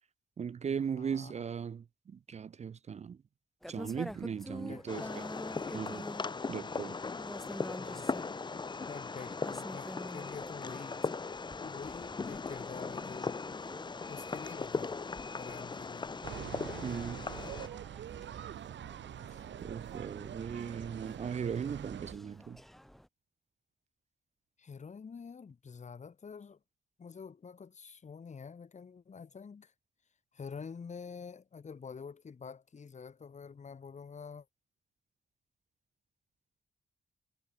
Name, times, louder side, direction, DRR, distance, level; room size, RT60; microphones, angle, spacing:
voice 1, 0.4-3.2 3.7-5.2 5.7-6.1 6.5-7.0 16.8-17.3 19.6-22.6, right 7 dB, 40° right, 0.4 m, -38 dB
voice 2, 1.0-1.3 4.6-5.1 7.8-8.3 8.9-11.0 11.6-13.4 14.1-15.0 15.3-16.2 19.3-19.4 24.6-26.6 27.0-29.7 30.3-34.5, left 5 dB, 40° left, 1.1 m, -47 dB
sound 1, 3.6-23.1, equal, ahead, 1.0 m, -50 dB
Fireworks, 4.9-17.7, left 4 dB, 25° left, 0.5 m, -39 dB
sound 2, 16.2-22.1, right 10 dB, 85° right, 0.8 m, -44 dB
wide cardioid pair, 115°, 18 cm